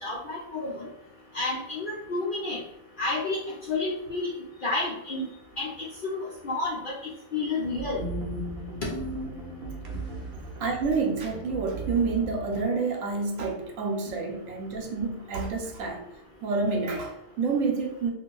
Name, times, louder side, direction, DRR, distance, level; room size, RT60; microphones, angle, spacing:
voice 1, 0.0-0.9 1.3-2.6 3.0-3.4 3.7-4.3 4.6-5.3 5.6-6.9 7.3-8.0 8.8-9.0, left 3 dB, 60° left, -4 dB, 0.5 m, -30 dB
sound 1, 7.6-12.6, right 2 dB, 55° right, 0.8 m, -36 dB
voice 2, 10.6-16.0 16.4-18.1, right 4 dB, 75° right, 2 dB, 1.1 m, -28 dB
2.7 x 2.5 x 3.8 m, 0.86 s
omnidirectional pair, 1.4 m